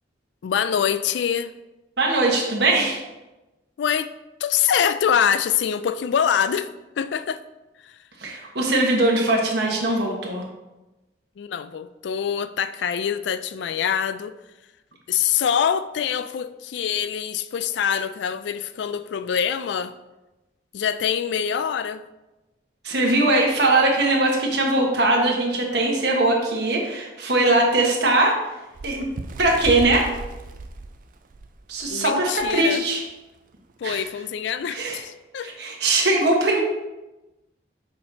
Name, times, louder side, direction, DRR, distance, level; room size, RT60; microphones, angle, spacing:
voice 1, 0.4-1.5 3.8-4.1 4.4-6.7 7.0-7.4 7.8-7.9 11.4-14.3 15.1-19.9 20.7-22.0 31.9-32.8 33.8-35.5, left 8 dB, 70° left, 0.3 m, -24 dB
voice 2, 2.0-3.0 8.2-10.4 22.8-28.5 28.8-29.1 29.4-30.1 31.7-33.1 33.8-34.1 34.7-35.0 35.4-36.6, right 2 dB, 60° right, 1.3 m, -21 dB
Bird, 28.7-31.9 32.4-32.6 32.8-33.1 33.9-34.0, right 3 dB, 45° right, 0.4 m, -35 dB
6.7 x 5.2 x 2.8 m
head